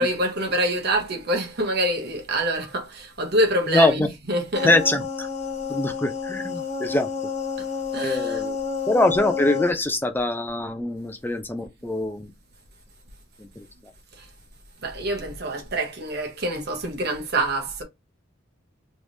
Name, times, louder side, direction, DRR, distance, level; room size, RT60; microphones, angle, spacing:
voice 1, 0.0-4.8 7.6-7.7 7.9-8.4 14.1-14.3 14.8-17.8, right 1 dB, 55° right, 1.0 m, -26 dB
voice 2, 3.7-4.1 4.6-5.3 5.7-7.1 8.0-8.6 8.9-12.3 13.6-13.7, left 2 dB, 10° left, 0.5 m, -23 dB
sound 1, 4.5-9.7, left 6 dB, 35° left, 0.9 m, -29 dB
3.4 x 3.2 x 2.6 m
head